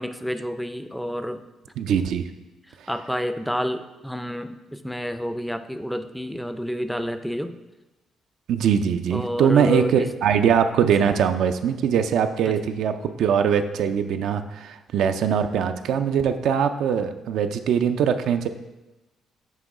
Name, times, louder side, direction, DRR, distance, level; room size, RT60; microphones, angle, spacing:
voice 1, 0.0-1.5 2.7-7.6 9.1-10.1 10.8-11.1 12.5-12.6, equal, ahead, 10 dB, 0.4 m, -29 dB
voice 2, 1.8-2.3 8.5-18.5, right 7 dB, 80° right, 8 dB, 0.3 m, -22 dB
7.5 x 3.0 x 4.7 m, 1.1 s
cardioid pair, 90°, 0 cm